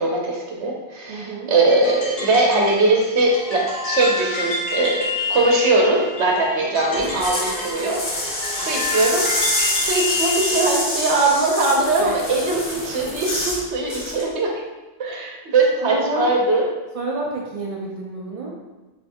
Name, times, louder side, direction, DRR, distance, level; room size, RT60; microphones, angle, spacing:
voice 1, 0.0-8.0 8.5-9.3 9.6-14.5 15.0-16.7, right 2 dB, 85° right, -1 dB, 1.0 m, -20 dB
voice 2, 1.1-1.5 12.0-12.2 15.8-16.3 16.9-18.5, right 2 dB, 50° right, -2 dB, 0.4 m, -29 dB
sound 1, 1.7-10.7, left 2 dB, 65° left, 1.4 m, -29 dB
sound 2, 7.0-13.6 13.9-14.2, left 1 dB, 45° left, 1.0 m, -26 dB
3.4 x 2.6 x 3.4 m, 1.1 s
omnidirectional pair, 1.1 m